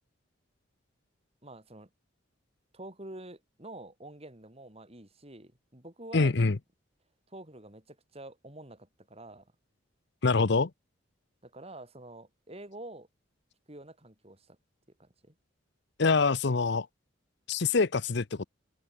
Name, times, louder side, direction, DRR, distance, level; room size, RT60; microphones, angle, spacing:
voice 1, 1.4-1.9 2.7-6.4 7.3-9.5 11.4-13.1 13.7-14.6 15.0-15.4, right 1 dB, 30° right, 4.1 m, -47 dB
voice 2, 6.1-6.6 10.2-10.7 16.0-16.9 17.5-18.4, left 4 dB, 60° left, 0.8 m, -25 dB
head